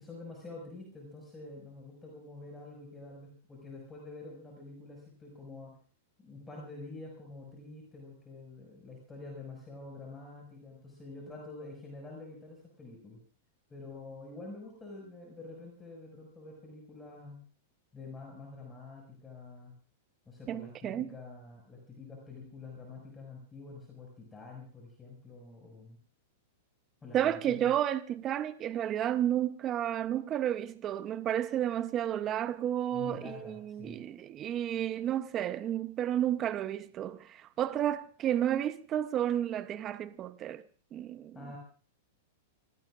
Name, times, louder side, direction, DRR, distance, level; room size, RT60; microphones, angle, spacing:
voice 1, 0.0-5.7 6.2-13.2 13.7-17.4 17.9-19.7 20.3-26.0 27.0-27.7 32.9-34.0 41.3-41.6, left 3 dB, 15° left, 6.0 m, -47 dB
voice 2, 20.5-21.1 27.1-40.6 40.9-41.3, right 11 dB, 30° right, 0.8 m, -31 dB
26.5 x 18.0 x 2.5 m
hypercardioid pair, 120°, 0 cm